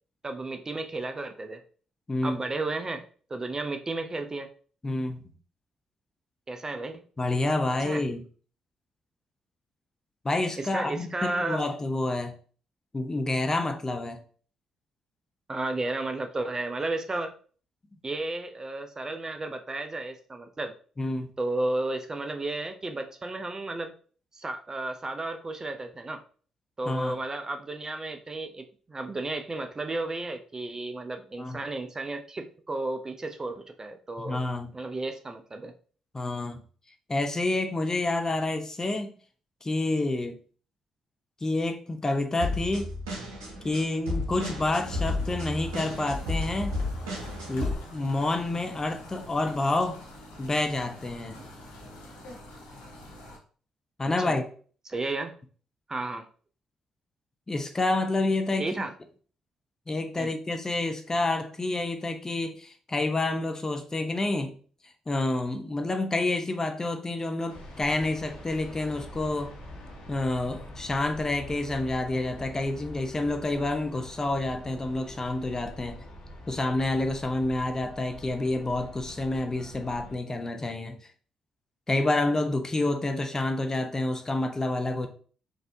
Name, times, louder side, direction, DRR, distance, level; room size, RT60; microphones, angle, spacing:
voice 1, 0.2-1.6 2.2-4.5 6.5-7.0 7.8-8.0 10.6-11.7 15.5-17.3 18.0-20.7 21.4-23.9 24.3-26.2 26.8-34.4 34.7-35.7 54.1-54.4 54.9-55.4 55.9-56.3 58.6-58.9 60.2-60.3, right 2 dB, 30° right, 0.5 m, -33 dB
voice 2, 4.8-5.2 7.2-8.2 10.2-12.3 12.9-14.2 21.0-21.3 26.9-27.2 31.4-31.6 34.2-34.7 36.1-36.6 37.1-39.1 39.6-40.4 41.4-42.9 43.6-46.8 47.5-50.0 50.4-51.4 54.0-54.5 57.5-58.8 59.9-64.5 65.1-69.5 70.1-76.0 76.5-81.0 81.9-85.1, left 2 dB, 25° left, 0.6 m, -28 dB
sound 1, 42.4-47.7, left 2 dB, 85° right, 0.9 m, -32 dB
sound 2, 44.8-53.4, left 1 dB, 80° left, 0.8 m, -46 dB
sound 3, 67.5-80.2, equal, 60° left, 1.1 m, -45 dB
4.0 x 2.6 x 2.7 m
hypercardioid pair, 45°, 2 cm